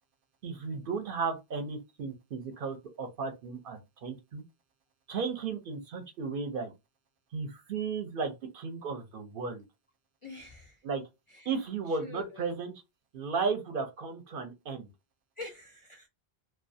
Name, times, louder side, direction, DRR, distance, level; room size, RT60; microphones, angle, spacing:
voice 1, 0.4-4.4 5.1-6.7 7.3-9.6 10.8-11.0 11.4-12.7 13.1-14.9, right 5 dB, 65° right, 0.7 m, -34 dB
voice 2, 10.2-10.8 11.3-11.5 11.9-12.6 15.4-16.1, left 3 dB, 45° left, 0.4 m, -46 dB
2.3 x 2.1 x 2.6 m
omnidirectional pair, 1.0 m